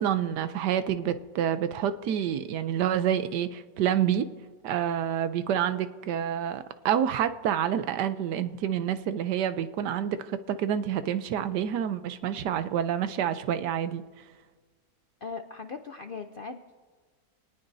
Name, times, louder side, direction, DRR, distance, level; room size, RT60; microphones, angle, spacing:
voice 1, 0.0-4.3 4.6-14.0, right 9 dB, 90° right, 12 dB, 1.3 m, -28 dB
voice 2, 15.2-16.8, left 4 dB, 65° left, 6 dB, 0.5 m, -39 dB
26.5 x 18.5 x 2.7 m, 1.5 s
omnidirectional pair, 1.7 m